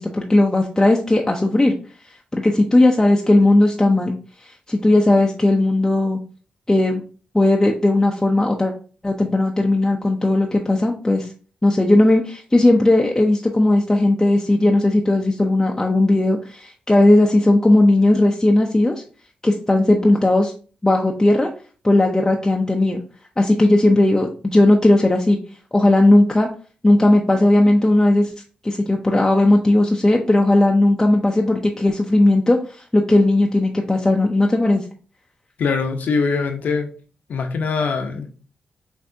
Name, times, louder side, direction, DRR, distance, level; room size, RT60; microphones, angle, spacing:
voice 1, 0.0-1.7 2.3-4.1 4.4-6.2 6.7-7.0 7.3-8.7 9.0-11.3 11.6-19.0 19.4-20.5 20.8-21.5 21.8-23.0 23.4-25.4 25.7-26.5 26.8-28.3 28.6-34.8, left 1 dB, 15° left, 0.6 m, -16 dB
voice 2, 35.6-36.9 37.3-38.3, left 4 dB, 75° left, 0.7 m, -22 dB
5.8 x 2.7 x 2.6 m
cardioid pair, 60°, 3 cm